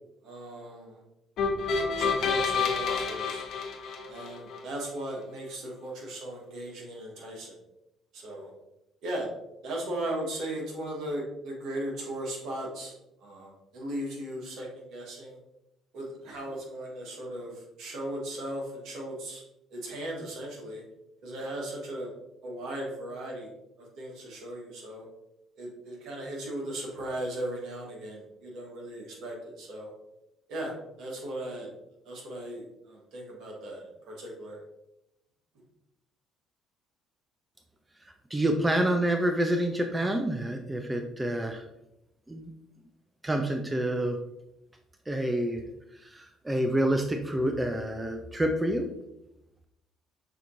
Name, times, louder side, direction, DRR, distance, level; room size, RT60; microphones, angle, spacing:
voice 1, 0.2-1.0 2.0-3.4 4.1-7.6 8.1-8.5 9.0-9.3 9.6-12.9 13.2-15.4 15.9-19.4 19.7-20.8 21.2-22.1 22.4-23.5 23.8-25.1 25.6-29.9 30.5-31.7 32.0-34.6, right 1 dB, 65° right, -1 dB, 1.4 m, -37 dB
sound 1, 1.4-4.6, left 5 dB, 60° left, 0.9 m, -29 dB
voice 2, 38.3-41.6 42.3-42.5 43.2-44.2 45.1-45.6 46.0-48.9, right 1 dB, 15° right, 5 dB, 0.5 m, -28 dB
6.5 x 2.9 x 2.7 m, 0.87 s
hypercardioid pair, 55°, 0 cm